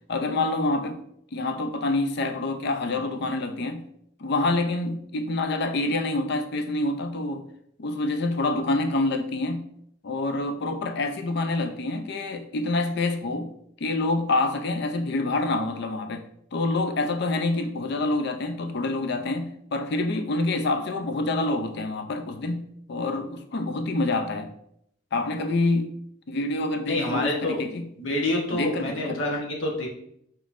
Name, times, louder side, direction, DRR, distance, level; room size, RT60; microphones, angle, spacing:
voice 1, 0.1-1.0 1.3-3.8 4.2-7.5 7.8-9.7 10.0-13.5 13.8-16.3 16.5-24.5 25.1-26.0 26.3-27.9 28.5-29.2, left 2 dB, 60° left, 0.5 m, -27 dB
voice 2, 26.9-27.6 28.0-29.9, left 2 dB, 80° left, 1.0 m, -27 dB
5.1 x 3.1 x 2.5 m
head